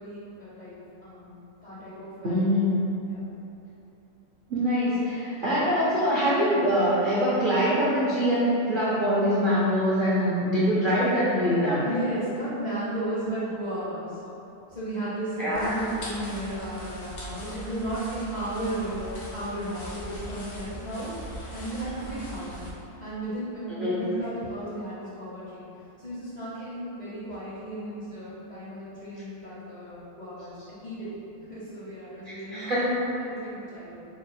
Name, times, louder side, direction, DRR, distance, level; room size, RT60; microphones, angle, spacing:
voice 1, 0.0-1.3 1.6-2.5 3.0-3.3 11.8-14.2 14.7-22.6 23.0-25.6 26.0-31.1 31.5-32.6 33.0-34.1, right 1 dB, 45° left, -10 dB, 0.5 m, -34 dB
voice 2, 2.2-2.9 4.5-11.8 15.4-15.7 23.7-24.0 32.2-33.1, equal, 60° right, -9 dB, 0.5 m, -24 dB
sound 1, 15.5-22.7, equal, 85° left, 1.4 m, -40 dB
3.9 x 2.0 x 4.1 m, 2.8 s
omnidirectional pair, 1.6 m